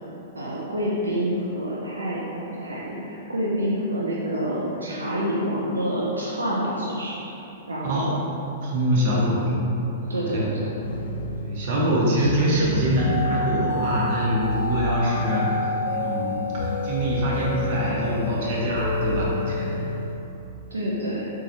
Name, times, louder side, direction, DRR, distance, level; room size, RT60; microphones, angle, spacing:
voice 1, 0.3-7.3 7.7-8.2 10.1-10.7 20.7-21.3, equal, 80° right, -6 dB, 0.4 m, -27 dB
voice 2, 8.6-9.5 10.0-10.5 11.4-19.7, equal, 50° right, -6 dB, 0.9 m, -24 dB
sound 1, 10.8-20.2, left 1 dB, 70° left, 0.4 m, -29 dB
4.0 x 2.3 x 3.0 m, 2.9 s
figure-of-eight pair, 105°, 0 cm